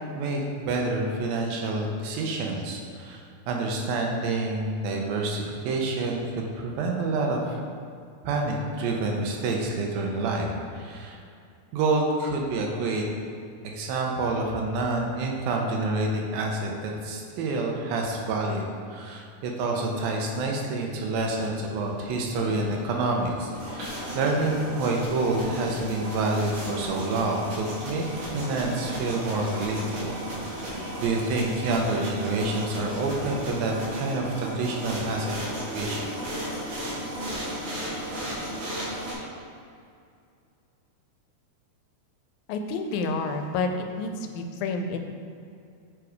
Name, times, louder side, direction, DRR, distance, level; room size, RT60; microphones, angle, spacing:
voice 1, 0.1-7.6 8.2-11.2 11.7-13.0 13.6-30.2 30.4-36.1 38.1-38.2, right 2 dB, 90° right, 0 dB, 2.7 m, -28 dB
sound 1, 22.3-39.1, right 1 dB, 65° right, 3.3 m, -35 dB
voice 2, 42.5-45.0, left 3 dB, 90° left, 6 dB, 2.4 m, -29 dB
7.6 x 5.0 x 4.7 m, 2.4 s
omnidirectional pair, 4.1 m